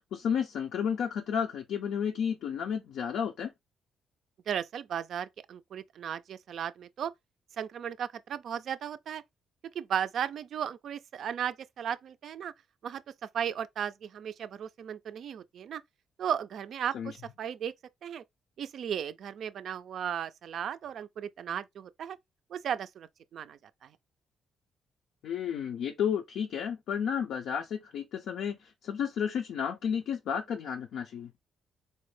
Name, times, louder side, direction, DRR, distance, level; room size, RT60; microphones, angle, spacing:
voice 1, 0.1-3.5 16.9-17.2 25.2-31.3, left 7 dB, 75° left, 0.5 m, -32 dB
voice 2, 4.5-7.1 7.6-9.2 9.8-12.5 12.8-13.0 13.3-15.8 16.2-16.9 17.4-17.7 18.0-18.2 18.6-22.2 22.5-23.6, right 8 dB, 65° right, 0.3 m, -35 dB
4.2 x 2.1 x 3.1 m
cardioid pair, 90°, 0 cm